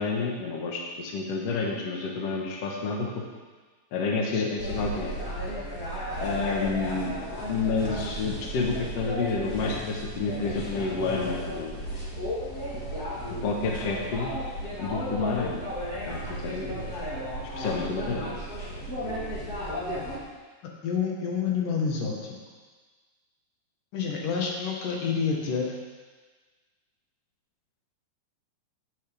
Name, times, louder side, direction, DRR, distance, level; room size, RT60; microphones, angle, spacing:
voice 1, 0.0-3.1 3.9-5.2 6.2-7.1 7.5-11.8 13.3-14.3 14.8-15.7 16.1-16.7 17.5-18.4, left 4 dB, 75° left, -1 dB, 1.4 m, -29 dB
sound 1, 4.6-20.2, equal, 30° left, 1.7 m, -34 dB
voice 2, 20.6-22.3 23.9-25.7, left 6 dB, 60° left, -1 dB, 2.6 m, -28 dB
16.5 x 7.6 x 3.5 m, 1.4 s
omnidirectional pair, 5.0 m